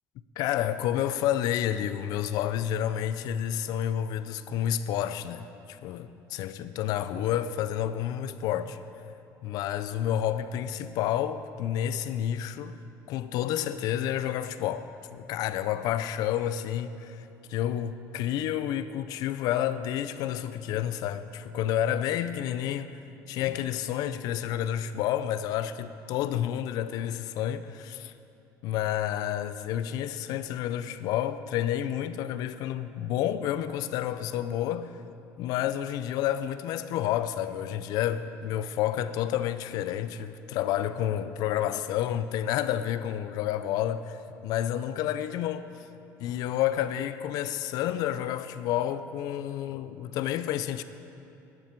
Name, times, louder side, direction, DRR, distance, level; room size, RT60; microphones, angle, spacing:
voice 1, 0.4-5.4 5.8-8.8 9.4-12.8 13.1-22.9 23.3-28.1 28.6-34.9 35.4-45.7 46.2-50.8, left 11 dB, 65° left, 0.5 m, -30 dB
12.5 x 11.0 x 4.5 m
cardioid pair, 155°, 7 cm